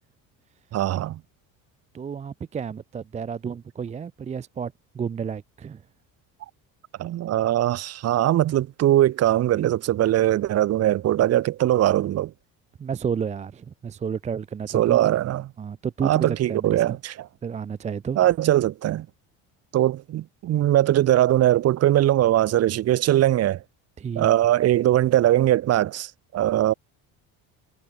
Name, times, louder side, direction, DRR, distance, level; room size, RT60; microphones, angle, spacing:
voice 1, 0.7-1.2 7.0-12.3 14.7-15.5 16.0-17.3 18.2-19.1 19.7-23.6 24.1-26.7, right 13 dB, 40° right, 1.3 m, -21 dB
voice 2, 1.9-5.8 12.8-15.1 15.6-17.0 17.4-18.2 24.0-24.3, right 7 dB, 20° right, 0.6 m, -31 dB
cardioid pair, 155°, 37 cm